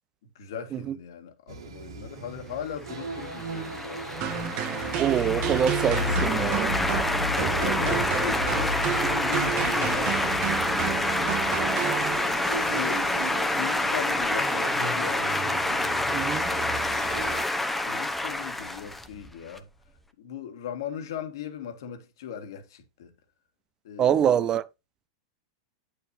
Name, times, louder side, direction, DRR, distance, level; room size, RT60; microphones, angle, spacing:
voice 1, 0.4-4.3 7.3-11.2 12.6-15.3 17.6-19.7 20.2-23.1 23.8-24.6, left 8 dB, 75° left, 1.9 m, -39 dB
sound 1, 1.5-17.5, right 1 dB, 85° right, 2.1 m, -35 dB
sound 2, 2.9-19.6, left 2 dB, 5° left, 1.0 m, -28 dB
sound 3, 4.2-12.6, right 11 dB, 50° right, 1.5 m, -31 dB
voice 2, 5.0-6.8 16.1-16.5 24.0-24.6, right 9 dB, 30° right, 0.6 m, -24 dB
9.2 x 6.8 x 2.7 m
hypercardioid pair, 125°, 2 cm